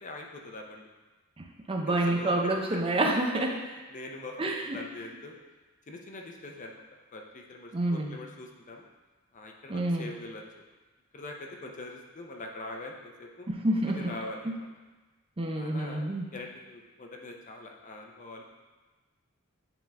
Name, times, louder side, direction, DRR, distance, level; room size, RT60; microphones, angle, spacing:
voice 1, 0.0-0.9 1.9-2.3 3.9-5.4 5.9-8.9 9.3-10.6 11.1-13.5 13.9-14.7 15.5-16.0 16.3-18.4, left 2 dB, 35° left, 1 dB, 0.7 m, -43 dB
voice 2, 1.7-3.6 4.4-4.8 7.7-8.2 9.7-10.1 13.5-14.1 14.4-14.5 15.4-16.3, right 1 dB, 25° right, 1 dB, 0.6 m, -28 dB
9.0 x 3.7 x 3.5 m, 1.2 s
head